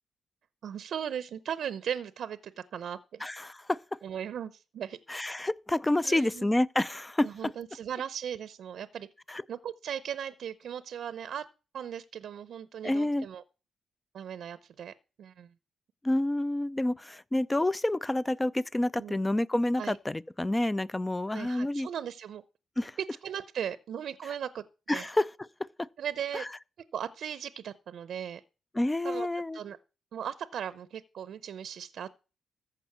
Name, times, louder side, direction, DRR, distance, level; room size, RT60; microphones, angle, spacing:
voice 1, 0.6-3.2 4.0-5.0 6.0-6.5 7.2-9.1 9.5-11.5 11.7-13.4 14.1-15.5 18.9-19.2 19.8-20.0 21.3-22.4 23.2-24.6 24.9-25.1 26.0-26.4 26.9-28.4 29.0-29.3 29.5-29.8 30.1-32.1, right 9 dB, 70° right, 0.7 m, -37 dB
voice 2, 3.2-3.8 5.1-7.5 9.3-9.4 12.8-13.3 16.0-21.9 22.8-23.0 24.9-25.9 26.3-26.5 28.7-29.6, left 1 dB, 15° left, 0.5 m, -29 dB
14.5 x 5.1 x 8.1 m
cardioid pair, 85°, 0 cm